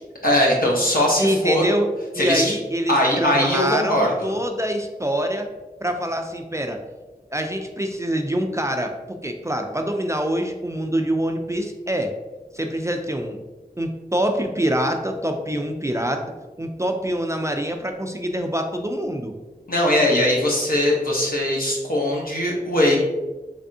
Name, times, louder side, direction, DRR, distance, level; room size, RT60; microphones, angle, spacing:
voice 1, 0.2-1.6 2.2-2.5 2.9-4.3 19.7-23.0, left 1 dB, 65° left, -3 dB, 0.9 m, -20 dB
voice 2, 1.2-1.9 2.1-5.5 5.8-6.8 7.3-12.1 12.5-13.4 13.8-16.2 16.6-19.3, equal, 20° right, 4 dB, 0.3 m, -25 dB
3.4 x 3.4 x 2.6 m, 1.2 s
wide cardioid pair, 50°, 16 cm